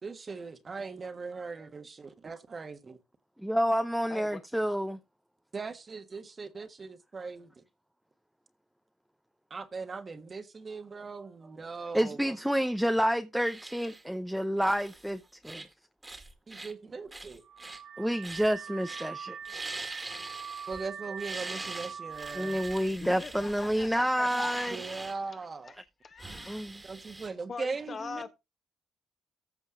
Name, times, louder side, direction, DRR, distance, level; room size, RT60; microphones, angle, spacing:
voice 1, 0.0-3.0 5.5-7.6 9.5-12.4 16.5-17.4 20.7-22.6 24.7-25.8 26.8-28.3, right 4 dB, 35° right, 1.4 m, -40 dB
voice 2, 3.4-5.0 11.9-15.6 18.0-19.4 22.4-24.8 26.5-26.8, equal, ahead, 0.7 m, -29 dB
voice 3, 4.1-4.4 23.0-25.8 26.0-26.7 27.5-28.3, left 5 dB, 45° left, 1.7 m, -42 dB
sound 1, 13.4-14.0 14.6-15.1 15.4-15.7 16.0-16.7 17.1-17.8 18.2-18.6 18.8-19.1 19.4-20.9 21.2-25.1 26.2-27.3, right 2 dB, 20° right, 1.8 m, -43 dB
Car / Alarm, 17.4-22.9, right 7 dB, 60° right, 0.7 m, -42 dB
14.5 x 5.2 x 3.8 m
cardioid pair, 90°, 0 cm